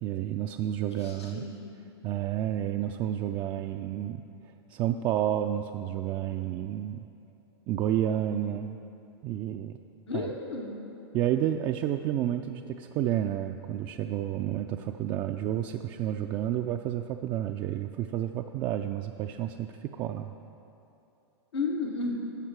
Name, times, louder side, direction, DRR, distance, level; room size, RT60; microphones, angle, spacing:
voice 1, 0.0-1.4 2.0-4.2 4.7-7.1 7.7-8.8 9.2-9.8 10.1-10.3 11.1-20.3, right 11 dB, 35° right, 6 dB, 0.3 m, -30 dB
voice 2, 0.9-1.7 10.1-10.8 21.5-22.1, left 3 dB, 85° left, -1 dB, 1.2 m, -33 dB
12.5 x 7.3 x 4.7 m, 2.8 s
hypercardioid pair, 110°, 14 cm